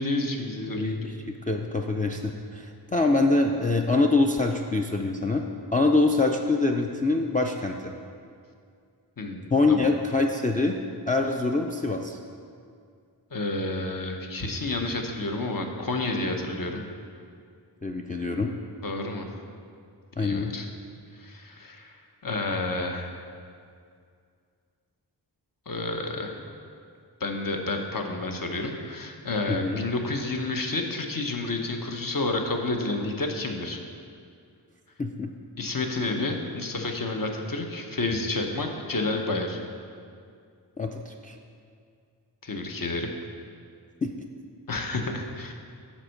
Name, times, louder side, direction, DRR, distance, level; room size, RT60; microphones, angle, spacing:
voice 1, 0.0-1.1 9.2-9.4 9.7-9.9 13.3-16.8 18.8-19.3 20.2-20.7 21.1-21.9 22.2-23.1 25.7-26.4 27.2-33.8 35.6-39.6 42.4-43.1 44.7-45.5, left 2 dB, 50° left, 3 dB, 0.8 m, -30 dB
voice 2, 0.8-5.4 5.7-7.9 9.5-10.8 11.1-12.2 17.8-18.5 20.2-20.5 29.5-29.8 35.0-35.3 40.8-41.4 44.0-44.1, left 3 dB, 20° left, 1 dB, 0.4 m, -25 dB
7.4 x 4.3 x 6.4 m, 2.3 s
wide cardioid pair, 60°, 43 cm